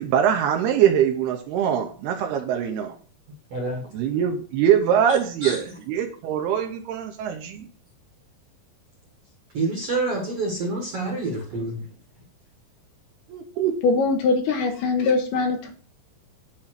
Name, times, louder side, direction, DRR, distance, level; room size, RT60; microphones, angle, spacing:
voice 1, 0.0-2.9 3.9-7.7 13.3-13.7, right 9 dB, 75° right, 3 dB, 2.8 m, -23 dB
voice 2, 3.5-3.8 5.4-5.6 9.5-11.8, right 2 dB, 50° right, -1 dB, 1.9 m, -27 dB
voice 3, 13.8-15.7, left 4 dB, 75° left, 3 dB, 3.0 m, -22 dB
9.8 x 3.8 x 5.9 m, 0.42 s
omnidirectional pair, 5.0 m